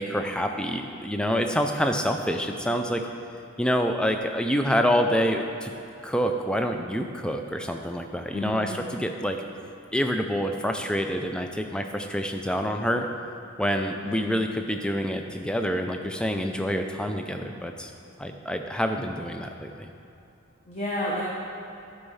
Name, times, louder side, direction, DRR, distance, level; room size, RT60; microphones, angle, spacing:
voice 1, 0.0-3.0 3.6-5.7 6.0-9.4 9.9-13.1 13.6-17.9 18.2-19.9, equal, 5° left, 5 dB, 0.4 m, -27 dB
voice 2, 8.3-8.8 14.0-14.3 20.7-21.2, left 1 dB, 30° left, -6 dB, 1.1 m, -31 dB
12.0 x 4.6 x 5.5 m, 2.8 s
head